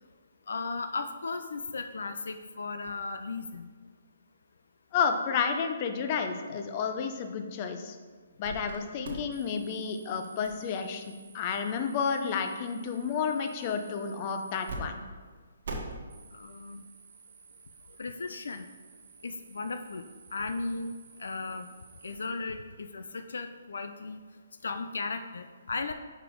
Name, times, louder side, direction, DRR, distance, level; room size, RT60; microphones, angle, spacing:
voice 1, 0.5-3.7 6.5-6.6 16.3-16.9 18.0-18.6 19.2-20.9 21.2-21.7 22.0-24.2 24.6-25.9, left 3 dB, 80° left, 8 dB, 0.4 m, -36 dB
voice 2, 4.9-8.0 8.4-15.0, left 6 dB, 35° left, 6 dB, 0.6 m, -31 dB
sound 1, 8.4-8.8 9.0-14.8 15.0-15.1 15.6-22.3, right 3 dB, 65° right, 1.3 m, -47 dB
5.9 x 5.1 x 4.6 m, 1.5 s
hypercardioid pair, 150°, 0 cm